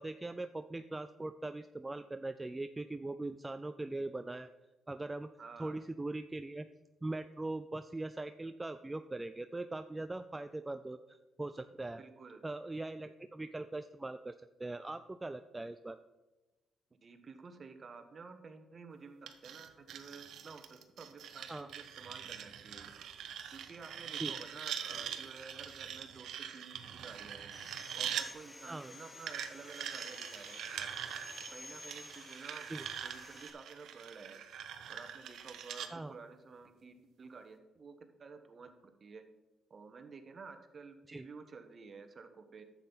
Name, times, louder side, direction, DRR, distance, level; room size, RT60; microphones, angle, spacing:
voice 1, 0.0-4.5 4.9-5.3 5.6-6.7 7.0-12.0 12.4-14.3 14.6-16.0 21.5-21.7 24.2-24.4 28.7-28.9 32.7-32.9 35.9-36.1 41.1-41.3, right 2 dB, 15° right, 9 dB, 0.3 m, -41 dB
voice 2, 5.4-5.8 12.0-12.4 17.0-22.9 23.5-27.5 27.9-30.9 31.5-32.7 33.0-34.4 34.9-39.2 39.7-42.6, right 4 dB, 40° right, 7 dB, 1.1 m, -52 dB
sound 1, 19.3-28.3 29.3-35.9, right 9 dB, 75° right, 0.8 m, -43 dB
sound 2, 24.8-31.4, left 2 dB, 75° left, 3.1 m, -63 dB
Sawing, 27.5-33.5, left 2 dB, 15° left, 1.2 m, -52 dB
10.5 x 7.4 x 4.0 m, 1.1 s
cardioid pair, 90°, 0 cm